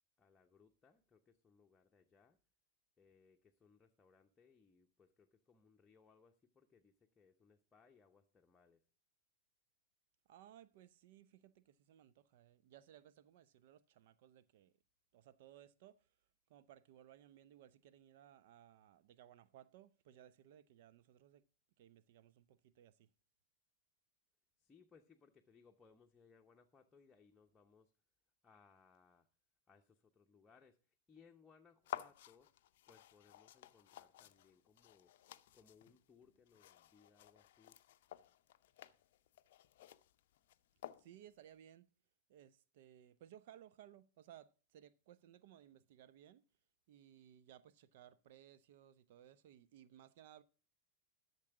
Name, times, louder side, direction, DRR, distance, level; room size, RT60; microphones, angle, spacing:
voice 1, 0.2-2.4 3.0-8.8 24.6-27.9 28.4-29.3 29.7-35.1 35.5-37.8, left 5 dB, 15° left, 0.9 m, -68 dB
voice 2, 10.3-14.7 15.1-16.0 16.5-21.4 21.8-23.1 41.0-41.9 42.3-46.4 46.9-50.4, right 11 dB, 50° right, 0.6 m, -61 dB
sound 1, 31.8-41.4, left 12 dB, 55° left, 0.5 m, -54 dB
12.0 x 6.8 x 4.8 m
figure-of-eight pair, 90°, 0 cm